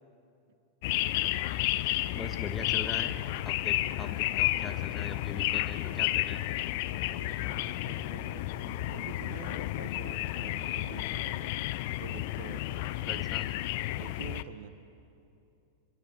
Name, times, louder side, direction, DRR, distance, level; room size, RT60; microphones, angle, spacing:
sound 1, 0.8-14.4, left 16 dB, 50° left, 0.6 m, -32 dB
voice 1, 1.7-3.2 3.4-6.5 13.0-13.4, left 5 dB, 15° left, 6 dB, 1.6 m, -41 dB
voice 2, 7.0-13.3 14.0-14.8, right 8 dB, 55° right, 12 dB, 1.1 m, -47 dB
23.5 x 22.5 x 6.9 m, 2.7 s
figure-of-eight pair, 90°, 0 cm